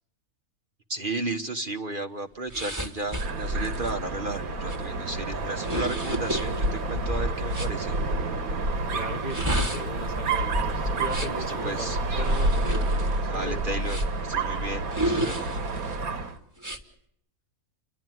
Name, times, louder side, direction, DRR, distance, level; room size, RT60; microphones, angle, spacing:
voice 1, 0.9-7.9 11.4-12.0 13.3-15.5, right 2 dB, 40° right, 6 dB, 1.2 m, -34 dB
sound 1, 2.5-7.8 9.1-11.5 12.2-14.3 14.9-16.0 16.6-16.8, equal, 10° right, 1.6 m, -32 dB
Dog, 3.1-16.4, right 2 dB, 75° right, 1.9 m, -29 dB
voice 2, 8.9-12.9 13.2-13.6, left 2 dB, 35° left, 5 dB, 1.1 m, -38 dB
30.0 x 11.0 x 9.3 m, 0.70 s
omnidirectional pair, 1.5 m